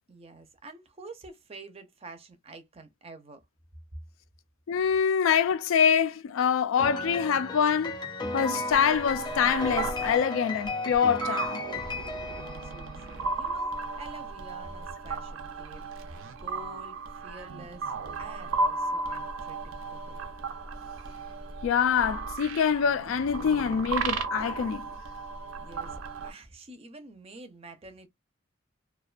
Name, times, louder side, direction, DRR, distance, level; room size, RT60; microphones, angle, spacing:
voice 1, 0.1-3.4 12.3-17.9 18.2-19.6 19.9-20.2 25.6-28.1, right 2 dB, 30° right, 0.5 m, -48 dB
voice 2, 4.7-8.0 8.3-11.6 21.6-24.9, left 7 dB, 80° left, 0.3 m, -25 dB
Piano, 6.8-13.3, left 3 dB, 20° left, 0.7 m, -35 dB
sound 1, 8.3-26.3, right 3 dB, 85° right, 0.5 m, -35 dB
2.4 x 2.2 x 2.3 m
head